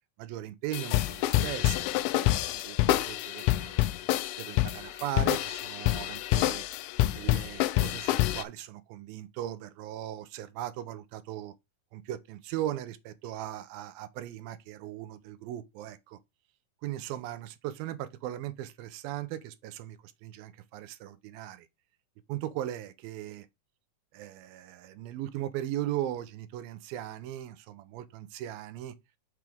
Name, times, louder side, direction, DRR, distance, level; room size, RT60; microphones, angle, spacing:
voice 1, 0.2-3.9 4.4-6.7 7.1-11.5 11.9-16.2 16.8-21.7 22.3-23.5 24.1-29.0, right 12 dB, 80° right, 2.4 m, -38 dB
sound 1, 0.7-8.4, left 16 dB, 85° left, 1.8 m, -27 dB
6.1 x 6.0 x 3.5 m
omnidirectional pair, 4.3 m